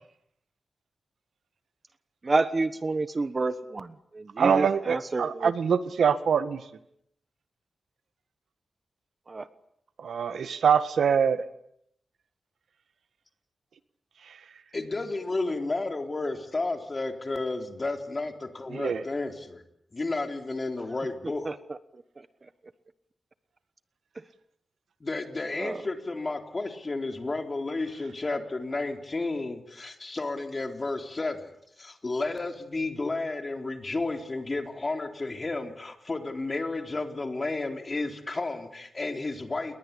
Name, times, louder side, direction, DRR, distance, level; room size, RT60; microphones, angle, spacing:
voice 1, 2.2-3.9 4.1-5.5 9.3-9.4 21.5-21.6 25.6-25.8, right 3 dB, 35° right, 13 dB, 1.2 m, -28 dB
voice 2, 4.4-6.6 10.0-11.4 18.7-19.0, right 7 dB, 85° right, 12 dB, 1.6 m, -24 dB
voice 3, 14.7-19.6 19.9-21.5 25.0-39.8, left 3 dB, 30° left, 5 dB, 3.9 m, -32 dB
29.5 x 21.5 x 8.6 m, 0.74 s
wide cardioid pair, 115°, 0 cm